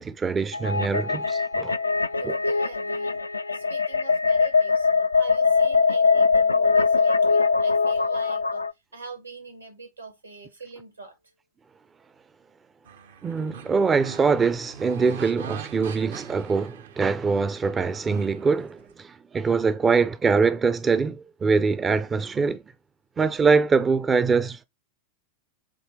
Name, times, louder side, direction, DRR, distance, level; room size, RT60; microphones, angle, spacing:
voice 1, 0.0-1.8 13.2-22.6 23.2-24.6, right 5 dB, 20° right, 0.5 m, -23 dB
sound 1, 0.5-8.7, left 4 dB, 80° left, 0.4 m, -22 dB
voice 2, 2.2-3.2 3.5-4.9 5.1-8.6 8.9-11.2, right 4 dB, 80° right, 2.1 m, -42 dB
sound 2, 12.8-18.9, right 7 dB, 60° right, 0.7 m, -43 dB
7.5 x 2.7 x 5.0 m
figure-of-eight pair, 90°, 0 cm